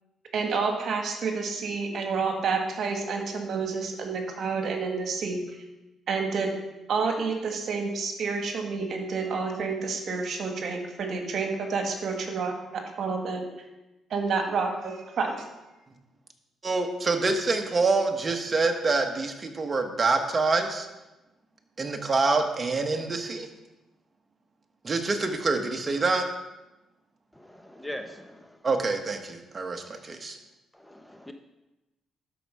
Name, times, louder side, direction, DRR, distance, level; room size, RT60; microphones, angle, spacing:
voice 1, 0.3-5.4 6.1-6.6 6.9-13.5 14.1-15.5, right 4 dB, 60° right, 3 dB, 1.7 m, -29 dB
voice 2, 16.6-20.9 21.8-23.5 24.8-26.2 28.6-30.4, right 3 dB, 30° right, 4 dB, 1.4 m, -26 dB
voice 3, 27.3-28.6 30.7-31.3, left 1 dB, 5° left, 6 dB, 0.7 m, -41 dB
12.0 x 4.7 x 5.6 m, 1.0 s
cardioid pair, 90°, 0 cm